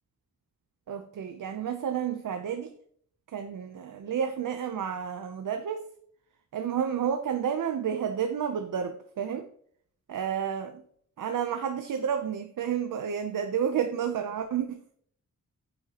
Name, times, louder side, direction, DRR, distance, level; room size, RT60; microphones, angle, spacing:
voice 1, 0.9-2.7 3.3-5.8 6.5-9.4 10.1-10.8 11.2-14.8, right 8 dB, 85° right, 7 dB, 0.7 m, -30 dB
9.2 x 7.8 x 2.9 m, 0.62 s
wide cardioid pair, 165°, 31 cm